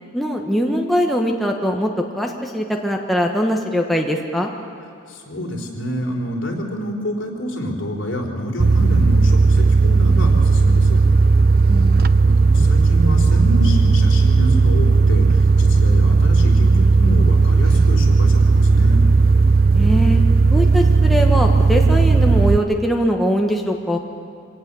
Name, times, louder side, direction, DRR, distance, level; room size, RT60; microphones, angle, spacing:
voice 1, 0.1-4.5 11.7-12.1 19.7-20.2 20.5-24.0, equal, ahead, 0 dB, 1.2 m, -21 dB
voice 2, 5.1-11.0 12.2-19.0, left 1 dB, 65° left, 0 dB, 3.9 m, -27 dB
sound 1, 8.6-22.6, right 4 dB, 45° right, 0.5 m, -14 dB
26.0 x 18.0 x 6.9 m, 2.6 s
head